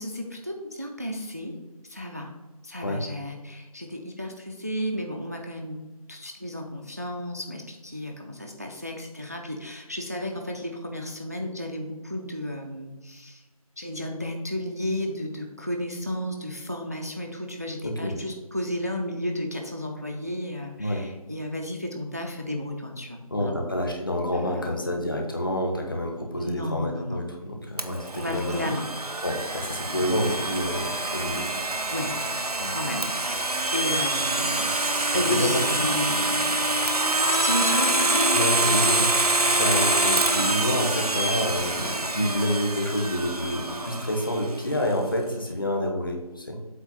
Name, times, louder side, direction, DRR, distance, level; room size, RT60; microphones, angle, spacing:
voice 1, 0.0-2.3 2.6-5.8 6.1-13.4 13.8-23.6 24.3-24.9 26.4-27.2 28.1-28.9 29.9-30.9 31.9-32.2 32.7-34.8 35.1-36.7 37.3-38.5, left 1 dB, 25° right, 3 dB, 0.5 m, -33 dB
voice 2, 17.8-18.2 20.8-21.0 23.3-28.6 29.2-31.4 32.6-32.7 35.3-35.9 38.3-39.1 39.5-46.6, equal, 35° left, 2 dB, 1.1 m, -28 dB
Domestic sounds home sounds, 27.8-44.6, right 2 dB, 85° right, 0.8 m, -26 dB
8.0 x 3.1 x 5.9 m, 1.2 s
figure-of-eight pair, 165°, 19 cm